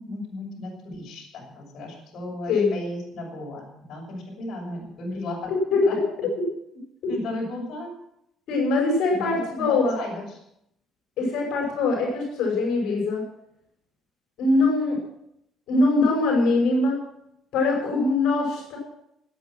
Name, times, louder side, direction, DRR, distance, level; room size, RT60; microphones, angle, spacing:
voice 1, 0.0-5.5 5.8-6.0 7.1-7.9 9.1-10.4, left 2 dB, 45° left, -2 dB, 6.4 m, -35 dB
voice 2, 5.5-6.3 7.0-7.1 8.5-10.0 11.2-13.2 14.4-15.0 15.7-17.0 17.5-18.8, left 3 dB, 65° left, -1 dB, 5.8 m, -22 dB
19.0 x 9.2 x 6.1 m, 0.80 s
cardioid pair, 155°, 0 cm